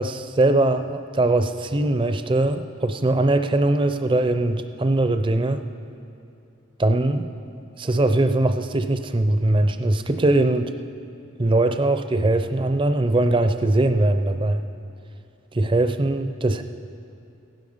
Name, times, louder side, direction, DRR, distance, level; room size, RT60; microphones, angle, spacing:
voice 1, 0.0-5.6 6.8-7.3 7.8-10.7 11.4-14.6 15.5-16.6, right 2 dB, 25° right, 9 dB, 0.5 m, -21 dB
15.5 x 11.5 x 5.5 m, 2.6 s
head